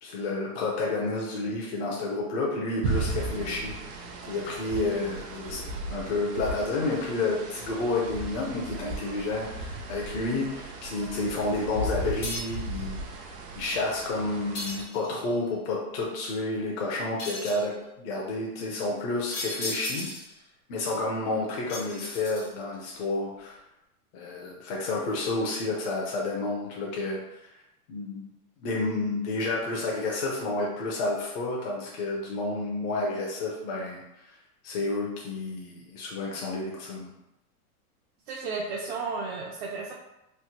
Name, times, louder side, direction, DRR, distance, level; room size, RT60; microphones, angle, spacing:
voice 1, 0.0-5.6 5.9-20.1 20.7-23.6 24.1-27.5 27.9-28.2 28.6-34.4 34.6-37.1, left 2 dB, 50° left, -3 dB, 0.7 m, -30 dB
sound 1, 2.8-14.8, right 2 dB, 80° right, 0.7 m, -36 dB
sound 2, 12.2-12.7 14.5-15.3 17.2-17.7 19.3-20.4 21.7-22.7, left 2 dB, 70° left, 1.4 m, -36 dB
voice 2, 38.3-39.9, right 4 dB, 45° right, -3 dB, 0.5 m, -33 dB
3.3 x 2.0 x 2.9 m, 0.90 s
hypercardioid pair, 135°, 47 cm